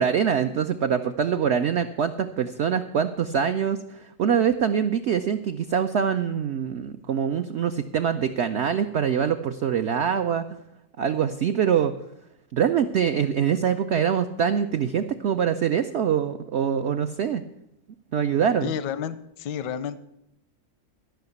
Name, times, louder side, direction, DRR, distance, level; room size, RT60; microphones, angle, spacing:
voice 1, 0.0-10.4 11.0-11.9 12.5-17.4 18.1-18.7, right 8 dB, 80° right, 8 dB, 0.6 m, -24 dB
voice 2, 18.6-20.0, left 8 dB, 85° left, 15 dB, 1.3 m, -30 dB
13.0 x 5.7 x 7.9 m, 0.82 s
omnidirectional pair, 1.8 m